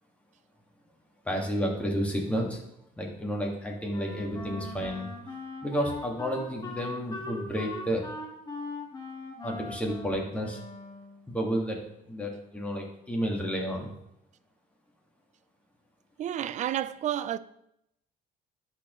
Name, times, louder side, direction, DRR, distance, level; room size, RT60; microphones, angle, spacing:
voice 1, 1.3-2.6 3.0-5.1 5.6-8.1 9.4-10.6 11.3-13.9, equal, 10° left, 1.9 m, -31 dB
Wind instrument woodwind instrument, 3.9-11.3, left 2 dB, 25° left, 1.5 m, -40 dB
voice 2, 16.2-17.4, right 11 dB, 45° right, 0.4 m, -30 dB
11.5 x 4.5 x 3.1 m
cardioid pair, 110°, 17 cm